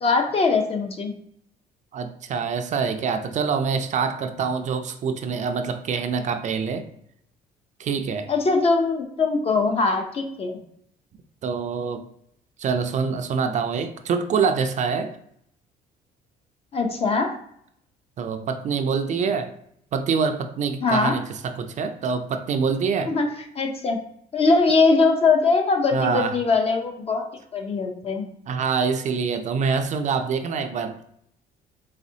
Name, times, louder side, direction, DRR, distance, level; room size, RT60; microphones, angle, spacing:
voice 1, 0.0-1.1 8.3-10.5 16.7-17.3 20.8-21.2 23.1-23.3 23.5-24.0 24.3-27.3 27.5-28.3, left 4 dB, 35° left, 5 dB, 0.6 m, -21 dB
voice 2, 1.9-6.9 7.8-8.3 11.4-12.0 12.6-15.2 18.2-19.5 19.9-23.1 25.9-26.4 28.5-31.0, right 5 dB, 45° right, 7 dB, 0.4 m, -25 dB
4.1 x 3.3 x 2.7 m, 0.71 s
cardioid pair, 110°, 17 cm